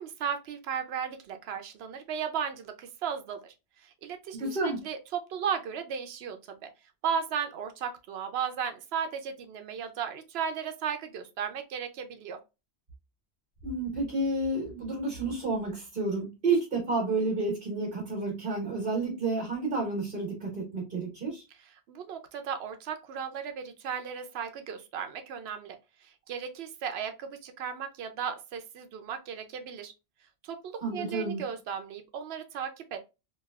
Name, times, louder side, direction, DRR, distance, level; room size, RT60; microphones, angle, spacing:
voice 1, 0.0-3.5 3.8-4.6 4.8-6.7 7.0-12.4 21.9-25.8 26.0-29.9 30.4-33.0, right 7 dB, 75° right, 0.8 m, -35 dB
voice 2, 4.3-4.8 13.6-21.4 30.8-31.4, right 3 dB, 55° right, 1.3 m, -30 dB
3.1 x 2.6 x 2.3 m
omnidirectional pair, 1.1 m